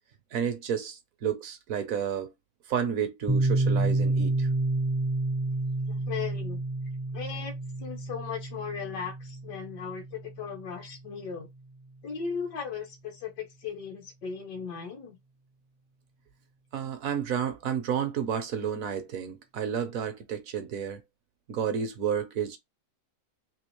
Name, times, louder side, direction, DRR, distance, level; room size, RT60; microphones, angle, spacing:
voice 1, 0.3-2.3 2.7-4.5 16.7-21.0 21.5-22.6, right 8 dB, 60° right, 1.0 m, -31 dB
Piano, 3.3-10.7, right 2 dB, 35° right, 0.4 m, -29 dB
voice 2, 5.9-6.6 7.1-11.5 12.0-15.2, left 6 dB, 80° left, 1.6 m, -37 dB
3.5 x 2.8 x 3.0 m
omnidirectional pair, 1.8 m